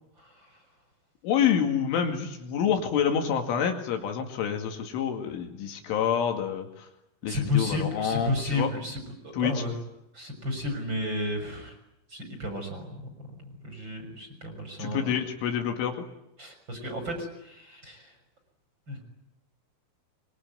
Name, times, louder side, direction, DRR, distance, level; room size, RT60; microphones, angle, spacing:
voice 1, 0.2-0.6 7.3-9.7 10.1-11.8 12.1-13.0 13.6-15.1 16.4-18.1 18.9-19.0, left 2 dB, 20° right, 5 dB, 6.6 m, -32 dB
voice 2, 1.2-6.9 7.2-8.7 9.3-9.6 14.8-16.0, left 8 dB, 70° left, 4 dB, 4.6 m, -27 dB
24.5 x 24.5 x 9.4 m, 0.83 s
omnidirectional pair, 5.9 m